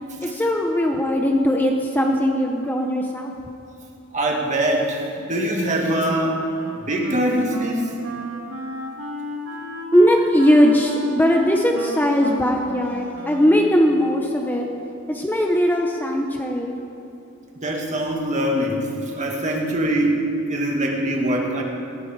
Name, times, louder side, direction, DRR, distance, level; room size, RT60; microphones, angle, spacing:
voice 1, 0.3-3.3 9.9-14.7 15.1-16.8, equal, 10° left, 1 dB, 0.9 m, -19 dB
voice 2, 4.1-6.4 6.9-7.9 17.6-18.9 19.1-20.2 20.5-21.6, right 1 dB, 35° right, 0 dB, 2.3 m, -23 dB
Wind instrument woodwind instrument, 6.6-14.0, equal, 75° right, 2.2 m, -33 dB
18.5 x 16.0 x 4.8 m, 2.7 s
head